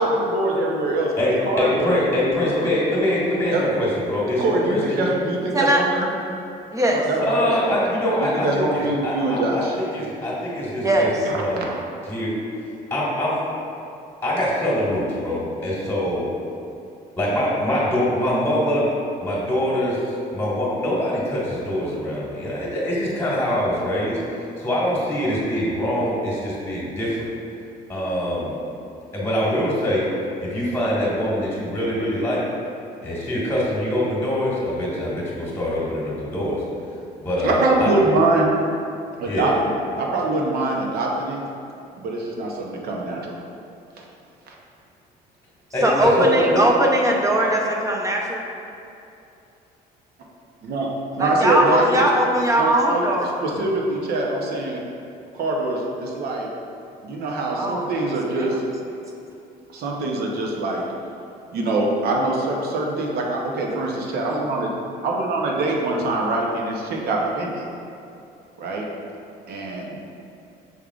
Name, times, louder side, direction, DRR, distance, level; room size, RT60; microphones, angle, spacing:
voice 1, 0.0-1.1 1.5-2.7 3.5-3.6 4.4-6.1 6.9-7.8 8.3-9.8 11.3-11.8 37.4-38.5 39.2-41.4 41.9-43.3 44.0-44.1 44.5-44.6 50.6-50.9 51.2-52.1 52.6-54.8 55.3-56.5 57.0-58.6 59.7-60.8 61.5-64.7 65.0-67.7 68.6-68.8 69.5-70.0, right 2 dB, 70° right, -1 dB, 0.8 m, -24 dB
voice 2, 1.2-5.1 7.2-11.1 11.3-11.7 12.1-12.3 12.9-13.4 14.2-16.3 17.2-18.9 19.2-20.1 20.3-24.2 24.6-27.3 27.9-28.6 29.1-30.1 30.4-32.4 33.0-36.6 37.2-37.9 39.2-39.5 45.7-46.6, left 1 dB, 15° left, -6 dB, 1.5 m, -24 dB
voice 3, 5.5-5.8 6.7-7.0 10.8-11.1 45.8-48.4 51.2-53.4 57.6-57.9 58.3-58.6, right 1 dB, 20° right, -1 dB, 0.6 m, -20 dB
6.3 x 3.5 x 2.4 m, 2.7 s
cardioid pair, 110°, 17 cm